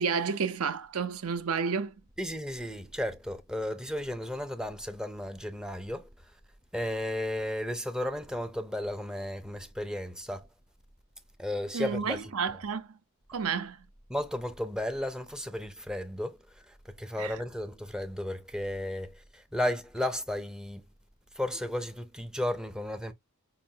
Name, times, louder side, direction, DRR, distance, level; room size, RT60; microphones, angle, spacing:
voice 1, 0.0-1.9 11.7-13.0 13.3-13.9 17.2-17.4, right 5 dB, 70° right, 0.6 m, -31 dB
voice 2, 2.2-6.1 6.7-10.5 11.4-12.2 14.1-16.4 16.7-20.8 21.4-23.1, left 1 dB, 5° right, 0.4 m, -34 dB
5.5 x 2.1 x 2.7 m
head